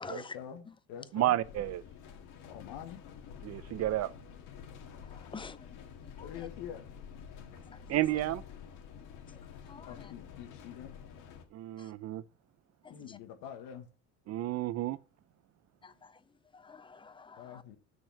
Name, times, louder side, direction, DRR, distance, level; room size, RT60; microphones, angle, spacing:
voice 1, 0.1-1.4 2.5-3.0 6.2-6.8 9.8-10.9 12.9-13.9 17.4-17.8, left 9 dB, 90° left, 1.6 m, -45 dB
voice 2, 1.1-1.8 3.4-4.1 7.9-8.4 11.5-12.2 14.3-15.0, right 14 dB, 50° right, 0.6 m, -31 dB
sound 1, 1.4-11.4, left 7 dB, 70° left, 1.8 m, -49 dB
voice 3, 5.1-5.6 9.7-9.9 12.8-12.9 15.8-15.9 16.5-17.6, left 4 dB, 15° left, 0.5 m, -46 dB
6.9 x 6.3 x 5.8 m
cardioid pair, 110°, 32 cm